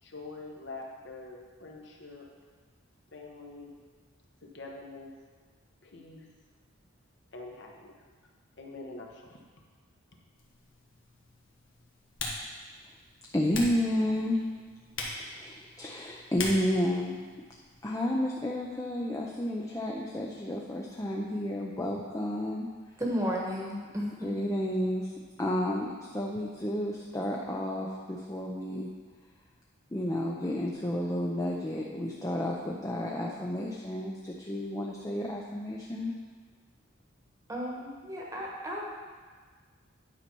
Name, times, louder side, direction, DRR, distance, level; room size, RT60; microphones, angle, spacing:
voice 1, 0.0-2.3 3.1-3.7 4.4-5.1 5.8-6.3 7.3-8.0 8.6-9.5, left 2 dB, 55° left, 0 dB, 1.1 m, -45 dB
Typing, 10.3-17.8, left 3 dB, 70° left, 1.4 m, -42 dB
voice 2, 13.3-14.4 15.1-17.2 17.8-22.7 24.2-25.1 25.4-28.9 29.9-36.1, left 1 dB, 15° left, -1 dB, 0.5 m, -31 dB
voice 3, 23.0-24.3 37.5-38.9, equal, 15° right, -2 dB, 1.2 m, -33 dB
9.7 x 5.6 x 4.5 m, 1.5 s
head